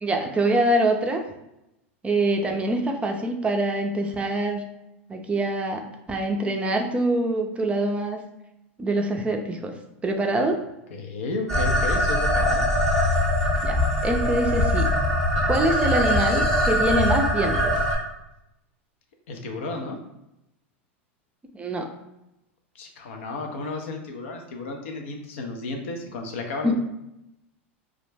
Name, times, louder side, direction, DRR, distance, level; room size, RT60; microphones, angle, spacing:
voice 1, 0.0-1.2 2.0-4.6 5.1-5.8 6.1-8.2 8.8-9.7 10.0-10.6 13.6-14.9 15.4-17.7 21.5-21.9 26.6-26.7, right 1 dB, 15° right, 3 dB, 0.4 m, -24 dB
voice 2, 10.9-12.7 19.3-20.0 22.7-26.7, left 3 dB, 75° left, 2 dB, 0.5 m, -33 dB
sound 1, 11.5-17.9, left 1 dB, 10° left, 0.8 m, -22 dB
2.3 x 2.0 x 3.2 m, 0.88 s
hypercardioid pair, 100°, 7 cm